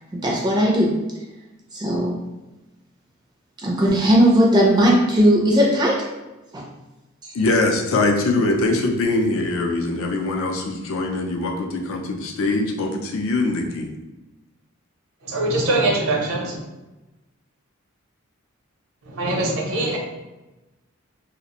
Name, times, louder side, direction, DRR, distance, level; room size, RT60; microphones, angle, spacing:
voice 1, 0.1-1.0 1.7-2.2 3.6-6.1 6.5-6.7 7.2-7.3, equal, 20° right, -2 dB, 0.3 m, -17 dB
voice 2, 7.3-13.9, left 2 dB, 70° left, 2 dB, 0.4 m, -22 dB
voice 3, 15.2-16.6 19.1-20.0, right 2 dB, 85° right, -1 dB, 0.6 m, -22 dB
2.4 x 2.1 x 2.8 m, 1.1 s
head